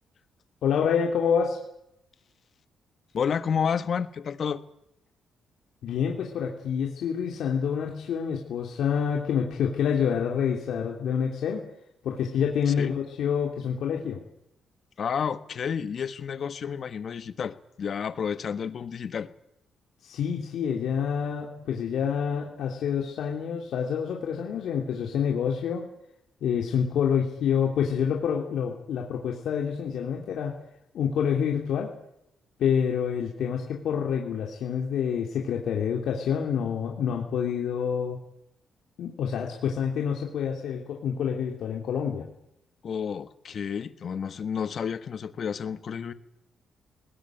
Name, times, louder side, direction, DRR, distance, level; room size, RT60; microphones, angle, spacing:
voice 1, 0.6-1.6 5.8-11.6 12.0-14.2 20.0-25.9 26.4-30.5 30.9-31.9 32.6-38.2 39.0-42.3, left 7 dB, 75° left, 0 dB, 3.2 m, -27 dB
voice 2, 3.1-4.6 12.7-12.9 15.0-19.3 42.8-46.1, left 7 dB, 50° left, 12 dB, 1.4 m, -30 dB
20.0 x 20.0 x 9.2 m, 0.80 s
cardioid pair, 135°, 0 cm